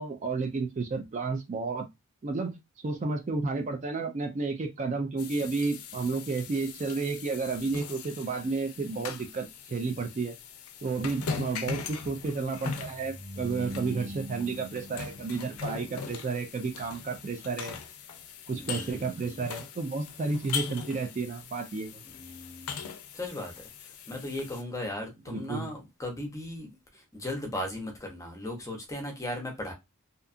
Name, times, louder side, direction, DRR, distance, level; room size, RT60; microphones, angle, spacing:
voice 1, 0.0-1.9 2.2-10.3 10.8-17.8 18.5-22.0 25.3-25.7, right 4 dB, 35° right, 0.3 m, -32 dB
sound 1, 5.2-24.6, left 6 dB, 80° left, 0.4 m, -41 dB
sound 2, 12.9-16.1, equal, 55° right, 1.2 m, -42 dB
voice 2, 13.6-14.1 18.5-19.4 22.0-22.9 23.1-23.6 24.1-26.7 27.1-29.7, left 1 dB, 15° left, 0.6 m, -37 dB
2.7 x 2.3 x 2.4 m
head